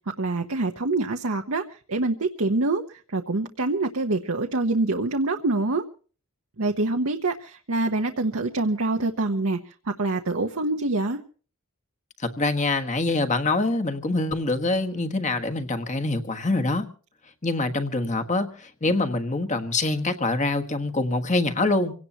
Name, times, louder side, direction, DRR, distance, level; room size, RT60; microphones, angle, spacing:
voice 1, 0.2-5.8 6.6-11.2, right 2 dB, 70° right, 4 dB, 1.0 m, -25 dB
voice 2, 12.2-16.9 17.4-18.5 18.8-21.9, left 2 dB, 35° left, 8 dB, 1.4 m, -25 dB
25.5 x 17.5 x 2.9 m, 0.40 s
head